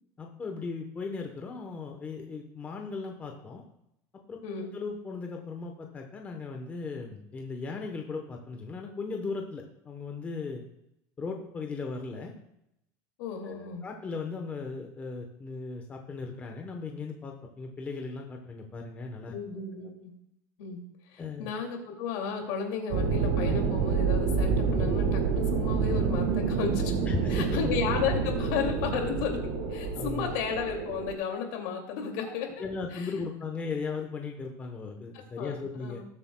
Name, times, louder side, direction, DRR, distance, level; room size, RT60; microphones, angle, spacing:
voice 1, 0.2-3.6 4.3-10.6 11.2-12.3 13.4-19.3 21.2-21.5 27.1-27.5 29.9-30.3 32.2-36.0, left 4 dB, 15° left, 2 dB, 0.9 m, -37 dB
voice 2, 4.4-4.8 13.2-13.8 19.3-20.1 20.6-20.8 21.1-26.9 27.3-32.5 32.9-33.1 35.1-35.5 35.8-36.0, left 6 dB, 65° left, 3 dB, 2.3 m, -33 dB
sound 1, 22.9-31.1, right 5 dB, 70° right, 1.6 m, -28 dB
19.0 x 8.1 x 2.2 m, 0.81 s
cardioid pair, 165°, 9 cm